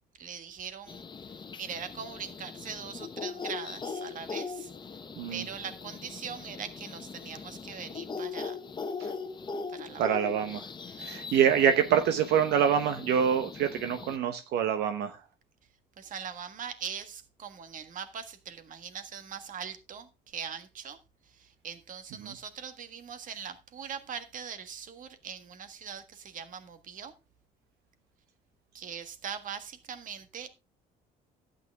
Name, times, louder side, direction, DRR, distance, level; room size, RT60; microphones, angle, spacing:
voice 1, 0.2-4.7 5.3-8.6 9.7-10.2 10.8-11.4 16.0-21.0 21.3-27.1 28.7-30.5, right 7 dB, 50° right, 1.6 m, -41 dB
sound 1, 0.9-14.2, left 5 dB, 25° left, 1.0 m, -40 dB
voice 2, 10.0-10.6 11.0-15.1 22.2-22.3, right 8 dB, 80° right, 1.1 m, -26 dB
12.5 x 8.9 x 3.5 m
cardioid pair, 110°, 17 cm